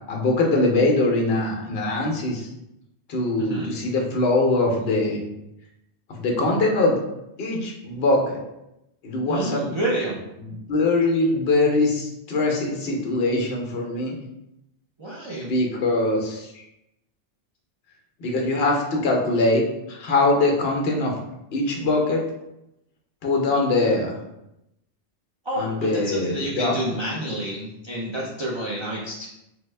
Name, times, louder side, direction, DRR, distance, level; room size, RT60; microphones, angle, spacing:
voice 1, 0.1-2.5 3.1-5.2 6.1-7.0 7.4-8.4 9.0-9.6 10.4-14.1 15.5-16.7 18.2-21.1 21.5-22.2 23.2-24.2 25.6-26.7, left 2 dB, 65° left, 1 dB, 0.9 m, -22 dB
voice 2, 3.4-3.7 9.3-10.2 15.0-15.5 25.4-29.3, right 1 dB, 45° right, -5 dB, 0.3 m, -29 dB
3.4 x 2.1 x 3.2 m, 0.87 s
omnidirectional pair, 1.2 m